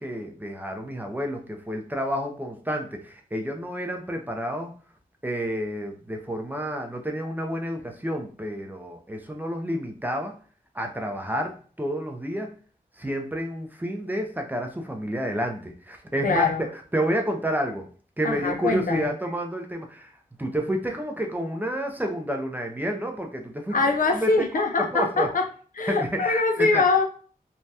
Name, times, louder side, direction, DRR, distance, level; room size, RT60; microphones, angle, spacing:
voice 1, 0.0-4.7 5.2-10.3 10.7-12.5 13.0-16.7 16.9-17.9 18.2-20.1 20.4-23.8 24.1-24.3 24.9-25.3 25.9-26.8, equal, 10° right, 3 dB, 0.5 m, -29 dB
voice 2, 16.2-16.6 18.2-19.1 23.7-25.4 25.7-27.0, left 3 dB, 65° left, 3 dB, 0.5 m, -23 dB
3.2 x 2.2 x 2.7 m, 0.41 s
wide cardioid pair, 110°, 15 cm